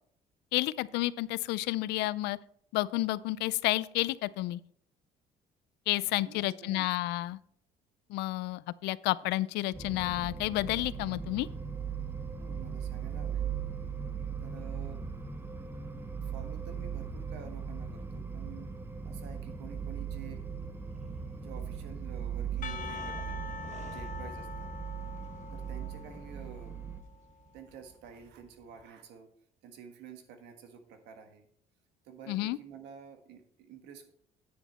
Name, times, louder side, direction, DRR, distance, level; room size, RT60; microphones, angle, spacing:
voice 1, 0.5-2.4 2.7-4.6 5.9-7.4 8.1-11.5 32.3-32.6, left 18 dB, 90° left, 19 dB, 0.4 m, -30 dB
voice 2, 6.0-6.9 12.3-13.6 14.4-15.0 16.2-18.7 19.0-20.4 21.4-23.4 23.9-24.7 25.5-26.8 27.5-29.3 29.6-31.5 32.0-34.1, right 7 dB, 90° right, 6 dB, 1.6 m, -50 dB
sound 1, 9.7-27.0, right 6 dB, 15° right, 1.0 m, -39 dB
sound 2, 20.3-28.8, right 3 dB, 45° right, 1.2 m, -51 dB
Percussion / Church bell, 22.6-27.2, left 5 dB, 50° left, 0.8 m, -44 dB
9.5 x 7.0 x 4.2 m, 0.66 s
cardioid pair, 110°, 17 cm